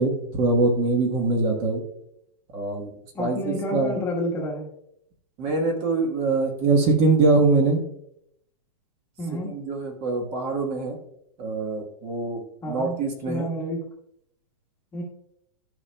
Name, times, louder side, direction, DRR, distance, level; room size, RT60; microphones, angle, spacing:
voice 1, 0.0-1.8 2.5-2.9 3.2-4.0 5.4-7.8 9.5-11.0 11.4-12.4 12.7-13.5, right 3 dB, 30° right, 2 dB, 1.4 m, -23 dB
voice 2, 3.1-4.6 9.2-9.5 12.6-13.0 13.3-13.9 14.9-15.0, left 1 dB, 10° left, -2 dB, 1.4 m, -29 dB
13.5 x 5.7 x 2.3 m, 0.73 s
hypercardioid pair, 160°, 20 cm